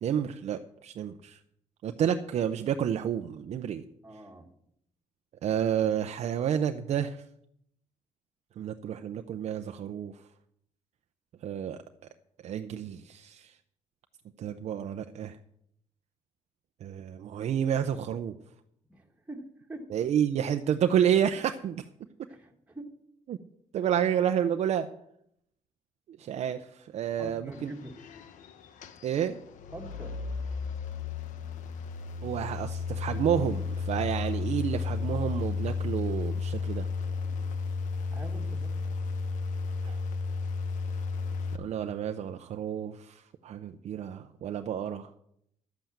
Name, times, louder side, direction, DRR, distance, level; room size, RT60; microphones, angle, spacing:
voice 1, 0.0-1.4 1.8-3.8 5.4-7.2 8.6-10.1 11.4-11.8 12.4-13.5 14.4-15.4 16.8-18.3 19.9-21.8 23.3-23.4 23.7-24.9 26.2-27.7 29.0-29.4 32.2-36.9 39.8-40.0 41.6-45.2, right 9 dB, 60° right, 7 dB, 0.6 m, -30 dB
voice 2, 4.0-4.5 18.9-19.9 22.3-23.0 27.2-28.0 29.7-30.2 36.5-36.6 37.0-37.5 38.0-38.9, right 1 dB, 10° right, 0 dB, 1.8 m, -45 dB
sound 1, 27.5-41.6, left 4 dB, 85° left, 1.1 m, -33 dB
11.5 x 7.9 x 7.4 m, 0.74 s
cardioid pair, 140°, 13 cm